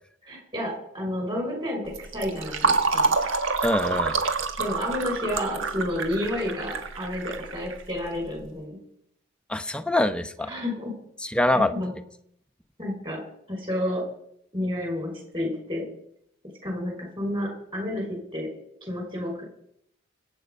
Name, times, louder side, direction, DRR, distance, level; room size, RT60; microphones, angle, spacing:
voice 1, 0.2-3.1 4.6-8.8 10.5-10.9 11.7-12.0 12.8-13.2 13.5-14.0 14.5-15.9 16.6-18.5 18.8-19.4, left 1 dB, 25° right, 1 dB, 5.6 m, -30 dB
Fill (with liquid), 1.9-8.3, right 4 dB, 80° right, 1.6 m, -27 dB
voice 2, 3.6-4.2 9.5-10.5 11.2-11.7, left 1 dB, 5° left, 8 dB, 0.8 m, -24 dB
24.5 x 9.0 x 5.5 m, 0.70 s
head